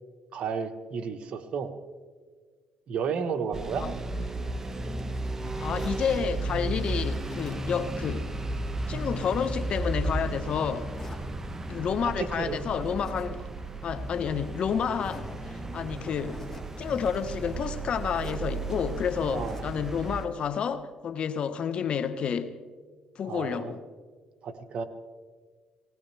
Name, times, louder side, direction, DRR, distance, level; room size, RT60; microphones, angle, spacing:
voice 1, 0.3-1.7 2.9-3.9 12.0-12.6 19.3-19.7 23.3-23.8 24.4-24.8, right 6 dB, 60° right, 7 dB, 1.2 m, -32 dB
sound 1, 3.5-20.3, right 2 dB, 20° right, 0.9 m, -34 dB
Zipper (clothing), 4.3-6.0 6.7-7.7 8.1-10.3 10.9-11.3 12.7-13.3 13.6-13.7 14.4-14.5 14.9-15.4 15.9-16.8 18.1-18.5 19.1-19.8, left 2 dB, 20° left, 2.1 m, -47 dB
voice 2, 5.6-8.3 8.9-11.0 11.7-13.5 13.8-16.4 16.8-22.6 23.2-23.8, left 7 dB, 55° left, 11 dB, 1.0 m, -30 dB
19.0 x 19.0 x 3.4 m, 1.5 s
cardioid pair, 85°, 2 cm